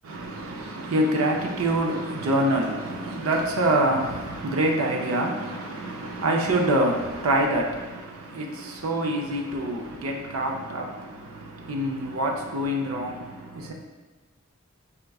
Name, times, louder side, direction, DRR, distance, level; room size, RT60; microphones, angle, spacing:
voice 1, 0.0-13.7, right 1 dB, 85° right, 0 dB, 0.5 m, -26 dB
5.5 x 3.7 x 2.3 m, 1.2 s
head